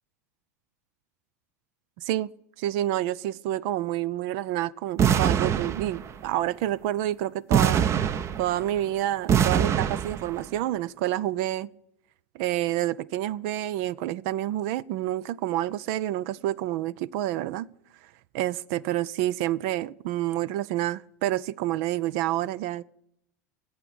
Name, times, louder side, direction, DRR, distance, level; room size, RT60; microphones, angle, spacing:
voice 1, 2.0-2.3 2.6-7.9 8.4-11.7 12.3-17.7 18.3-22.8, right 14 dB, 60° right, 0.5 m, -28 dB
sound 1, 5.0-6.3 7.5-8.8 9.3-10.4, right 8 dB, 35° right, 0.8 m, -23 dB
15.5 x 8.0 x 8.6 m
hypercardioid pair, 90°, 9 cm